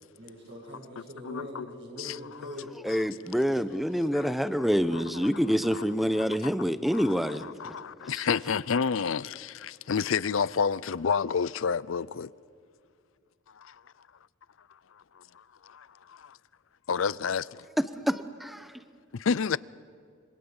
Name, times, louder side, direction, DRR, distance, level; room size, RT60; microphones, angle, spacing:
voice 1, 0.1-2.7, left 1 dB, 60° right, 7.3 m, -42 dB
voice 2, 1.2-1.7 2.0-2.2 2.9-3.0 4.1-4.3 4.9-5.0 5.7-5.8 6.1-6.5 6.9-7.1 7.4-12.3 13.6-13.7 15.2-15.3 15.6-16.4 16.9-17.6 19.1-19.6, left 6 dB, 75° left, 0.5 m, -30 dB
voice 3, 2.8-7.5 18.1-18.7, equal, ahead, 0.8 m, -27 dB
26.5 x 24.5 x 7.2 m
head